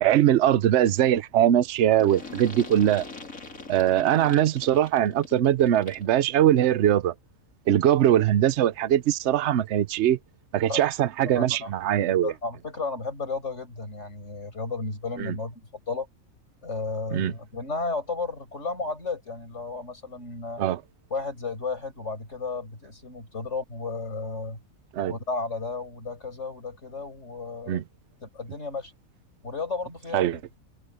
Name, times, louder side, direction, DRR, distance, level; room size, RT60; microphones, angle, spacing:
voice 1, 0.0-3.0 3.7-7.1 7.7-10.2 10.5-12.3 15.2-15.3 17.1-17.3 20.6-20.8 24.9-25.1 27.7-27.8 30.1-30.4, right 11 dB, 60° right, 0.9 m, -21 dB
sound 1, 2.0-6.2, left 3 dB, 75° left, 4.3 m, -42 dB
voice 2, 11.2-11.7 12.1-16.1 16.6-20.6 21.1-24.6 25.1-27.8 28.2-28.9 29.4-30.4, left 3 dB, 55° left, 6.2 m, -33 dB
omnidirectional pair, 1.4 m